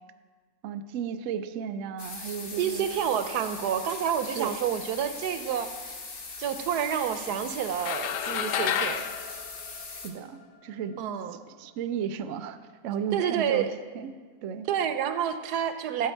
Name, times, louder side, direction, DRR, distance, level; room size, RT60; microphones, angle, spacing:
voice 1, 0.6-2.9 4.4-4.5 10.0-11.0 11.6-12.6 12.8-13.7 13.9-14.1 14.4-14.7, right 8 dB, 65° right, 11 dB, 0.9 m, -34 dB
sound 1, 2.0-10.1, left 4 dB, 45° left, 1.5 m, -40 dB
voice 2, 2.2-6.0 6.4-9.1 11.0-11.4 13.1-13.7 14.7-16.1, right 9 dB, 80° right, 10 dB, 1.2 m, -29 dB
sound 2, 7.8-10.4, left 9 dB, 85° left, 1.2 m, -31 dB
14.0 x 8.2 x 4.5 m, 1.5 s
omnidirectional pair, 1.7 m